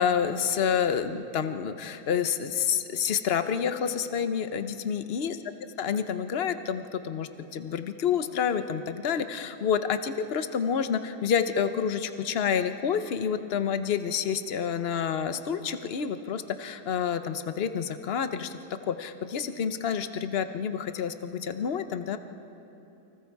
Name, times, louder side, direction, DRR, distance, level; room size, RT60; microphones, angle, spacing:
voice 1, 0.0-5.4 5.8-18.6 18.8-22.2, left 7 dB, 60° left, 9 dB, 0.6 m, -28 dB
29.5 x 25.0 x 4.7 m, 2.9 s
omnidirectional pair, 2.2 m